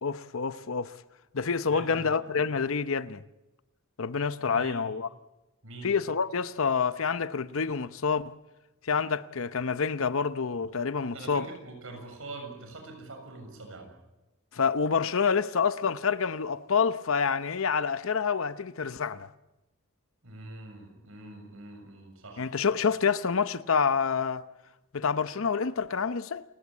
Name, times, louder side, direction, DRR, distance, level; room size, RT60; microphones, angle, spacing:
voice 1, 0.0-0.9 1.3-3.2 4.0-5.1 5.8-8.3 8.9-11.5 14.5-19.3 22.4-24.5 24.9-26.4, left 5 dB, 65° left, 0.8 m, -27 dB
voice 2, 1.7-2.1 4.2-4.8 5.6-5.9 11.1-13.9 20.2-22.5 22.8-22.9, right 2 dB, 70° right, 7.0 m, -44 dB
29.0 x 17.0 x 8.5 m
head